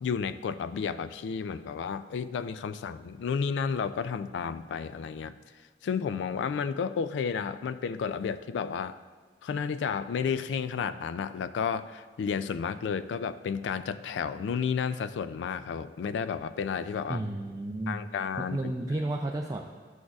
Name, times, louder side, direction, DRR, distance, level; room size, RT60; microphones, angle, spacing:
voice 1, 0.0-5.3 5.8-9.0 9.4-17.2 17.9-18.7, left 6 dB, 90° left, 14 dB, 0.3 m, -32 dB
voice 2, 17.1-18.0 18.4-19.6, right 2 dB, 20° right, 0 dB, 0.3 m, -32 dB
10.5 x 6.3 x 2.4 m, 1.5 s
head